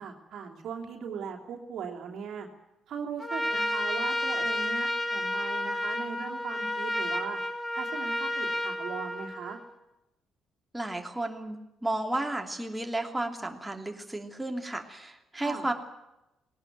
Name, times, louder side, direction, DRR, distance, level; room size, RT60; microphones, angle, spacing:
voice 1, 0.0-2.5 2.9-7.4 7.7-9.6 15.4-15.7, right 7 dB, 65° right, 2 dB, 2.9 m, -39 dB
Trumpet, 3.2-9.7, left 1 dB, 10° left, 2.7 m, -31 dB
voice 2, 10.7-15.7, right 1 dB, 10° right, 3 dB, 2.8 m, -33 dB
19.0 x 18.5 x 9.4 m, 0.93 s
hypercardioid pair, 45°, 0 cm